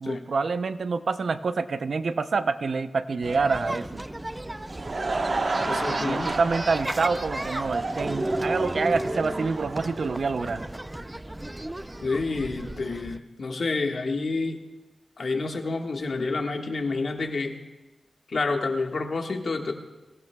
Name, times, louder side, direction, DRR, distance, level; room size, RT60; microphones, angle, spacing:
voice 1, 0.0-4.0 5.9-10.6, right 4 dB, 70° right, 11 dB, 0.6 m, -27 dB
sound 1, 3.2-13.2, right 1 dB, 15° right, 0.5 m, -34 dB
Laughter / Crowd, 4.5-10.8, right 3 dB, 50° right, 1.2 m, -31 dB
voice 2, 5.6-6.4 12.0-14.6 15.2-17.5 18.3-19.7, left 3 dB, 65° left, 3 dB, 1.5 m, -28 dB
24.0 x 16.0 x 2.3 m, 1.1 s
wide cardioid pair, 70°, 0 cm